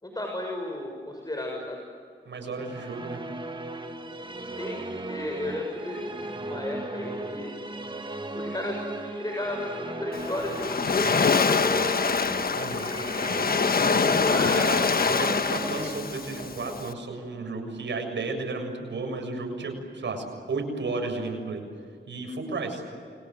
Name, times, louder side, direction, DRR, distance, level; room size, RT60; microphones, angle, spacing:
voice 1, 0.0-1.8 4.4-7.5 8.3-11.9 14.0-14.8, left 1 dB, 20° left, 1 dB, 6.8 m, -33 dB
voice 2, 2.3-3.2 12.5-12.9 13.8-21.6 22.1-22.8, right 3 dB, 75° right, 4 dB, 7.2 m, -33 dB
Musical instrument, 2.4-17.8, right 2 dB, 25° right, 2.2 m, -37 dB
Waves surf, 10.1-16.9, left 5 dB, 50° left, 1.3 m, -25 dB
29.5 x 24.0 x 8.0 m, 2.2 s
cardioid pair, 70°, 19 cm